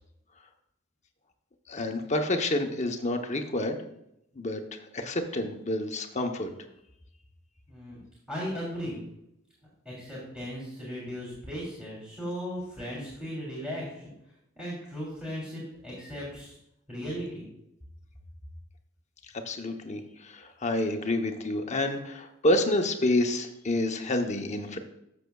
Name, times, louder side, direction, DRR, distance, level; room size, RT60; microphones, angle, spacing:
voice 1, 1.7-3.8 4.4-6.5 19.5-24.8, left 1 dB, 35° left, 4 dB, 0.9 m, -28 dB
voice 2, 7.7-8.0 8.3-9.0 9.8-14.1 14.6-16.6 16.9-17.5, equal, 5° right, -6 dB, 3.1 m, -37 dB
13.5 x 7.0 x 2.3 m, 0.81 s
head